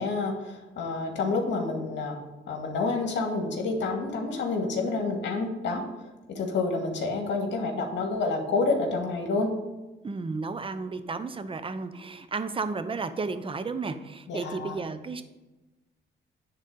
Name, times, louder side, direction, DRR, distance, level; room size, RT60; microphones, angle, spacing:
voice 1, 0.0-2.2 2.5-5.8 6.3-9.5 14.3-14.8, left 3 dB, 65° left, 2 dB, 2.1 m, -28 dB
voice 2, 10.0-15.2, right 4 dB, 25° right, 11 dB, 0.8 m, -33 dB
9.9 x 4.1 x 6.8 m, 1.1 s
cardioid pair, 90°, 20 cm